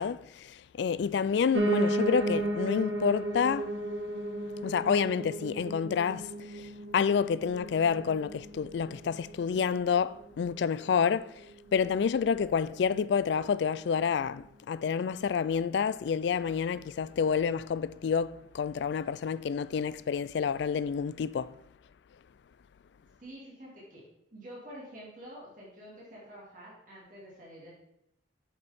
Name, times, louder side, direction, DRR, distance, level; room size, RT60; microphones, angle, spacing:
voice 1, 0.0-3.8 4.6-21.6, left 6 dB, 65° left, 0.3 m, -29 dB
Piano, 1.5-10.6 11.0-12.2 12.5-12.6 12.8-12.9 13.1-13.2 13.8-13.9, right 1 dB, 85° right, 1.1 m, -34 dB
voice 2, 23.2-24.0 24.3-27.7, equal, 45° right, 2.6 m, -48 dB
8.0 x 6.6 x 3.6 m
head